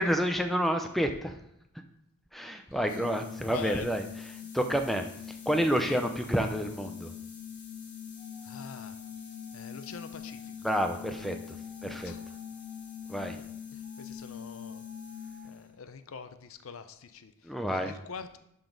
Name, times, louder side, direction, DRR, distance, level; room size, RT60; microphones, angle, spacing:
voice 1, 0.0-1.3 2.3-4.0 4.5-7.1 10.6-11.6 11.8-12.1 13.1-13.4 17.4-17.9, equal, ahead, 5 dB, 0.4 m, -29 dB
voice 2, 2.7-3.1 3.4-3.9 5.9-6.0 8.4-9.0 9.5-10.7 12.0-12.3 13.7-14.8 15.4-18.4, left 5 dB, 70° left, 10 dB, 0.5 m, -44 dB
sound 1, 2.8-15.8, left 8 dB, 50° left, 2.0 m, -43 dB
sound 2, 8.1-13.5 13.8-15.5, equal, 30° left, 2.5 m, -57 dB
11.5 x 3.9 x 3.8 m, 0.78 s
head